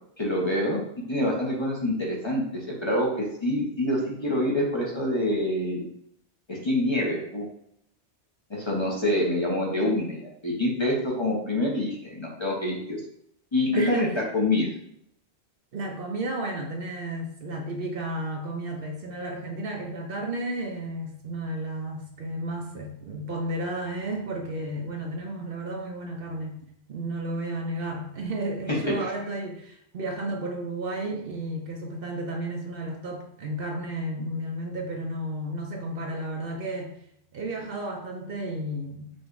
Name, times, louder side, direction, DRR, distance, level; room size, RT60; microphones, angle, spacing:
voice 1, 0.2-5.9 6.5-7.5 8.5-13.0 13.5-14.7 28.7-29.1, left 1 dB, 30° left, -3 dB, 0.8 m, -26 dB
voice 2, 13.7-14.1 15.7-26.6 26.9-36.9 37.3-39.1, right 1 dB, 60° right, 1 dB, 0.8 m, -32 dB
5.1 x 2.3 x 3.8 m, 0.73 s
omnidirectional pair, 1.2 m